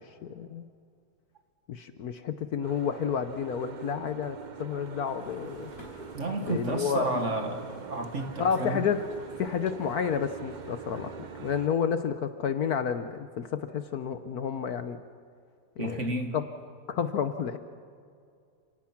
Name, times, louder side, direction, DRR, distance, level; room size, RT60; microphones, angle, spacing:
voice 1, 0.2-0.7 1.7-5.7 6.5-7.1 8.4-9.0 9.4-11.1 11.4-15.0 15.8-16.1 16.3-16.4 16.9-17.6, left 7 dB, 60° left, 10 dB, 1.2 m, -30 dB
Boat Water vehicle, 2.6-11.7, right 6 dB, 75° right, 0.4 m, -44 dB
sound 1, 4.7-11.7, left 2 dB, 45° left, 4.7 m, -56 dB
voice 2, 6.1-8.9 15.8-16.4, right 2 dB, 40° right, 5 dB, 1.9 m, -31 dB
29.5 x 18.5 x 5.9 m, 2.3 s
omnidirectional pair, 2.0 m